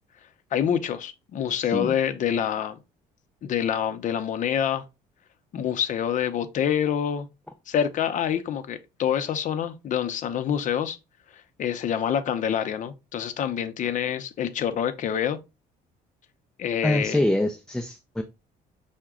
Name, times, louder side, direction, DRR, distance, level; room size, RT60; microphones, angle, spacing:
voice 1, 0.5-2.8 3.4-4.8 5.5-7.3 7.7-11.0 11.6-15.4 16.6-17.2, left 9 dB, 50° left, 0.6 m, -26 dB
voice 2, 16.8-18.2, left 1 dB, 5° left, 0.4 m, -25 dB
5.7 x 2.2 x 3.6 m
cardioid pair, 110°, 17 cm